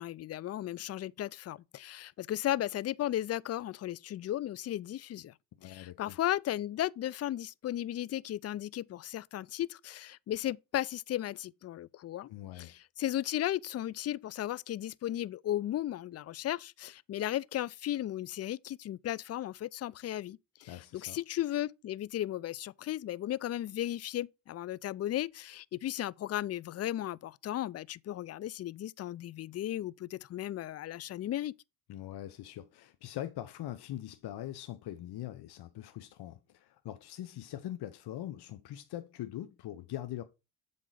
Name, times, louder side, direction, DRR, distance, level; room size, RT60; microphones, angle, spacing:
voice 1, 0.0-5.3 5.6-12.3 12.6-31.5, left 13 dB, 35° left, 0.4 m, -35 dB
voice 2, 5.6-6.2 12.3-12.7 20.7-21.2 31.9-40.2, left 13 dB, 60° left, 0.8 m, -42 dB
7.6 x 3.9 x 4.8 m
supercardioid pair, 60°, 44 cm